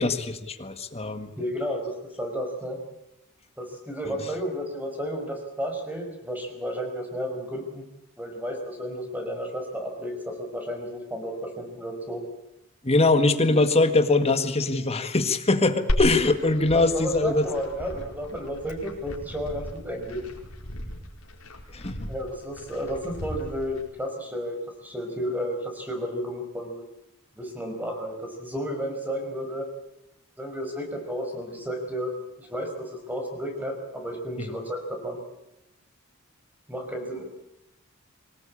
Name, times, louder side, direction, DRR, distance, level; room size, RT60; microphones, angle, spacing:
voice 1, 0.0-1.3 12.8-17.5 21.7-22.1 34.4-34.5, left 2 dB, 30° left, 9 dB, 1.7 m, -22 dB
voice 2, 1.4-2.8 3.6-7.8 8.2-12.2 16.7-20.2 22.1-24.6 24.8-26.8 27.3-29.7 30.4-32.1 32.4-35.2 36.7-37.2, equal, 10° right, 3 dB, 5.5 m, -32 dB
Glass, 15.9-23.9, equal, 85° left, 4.9 m, -34 dB
24.5 x 19.0 x 8.7 m, 0.86 s
head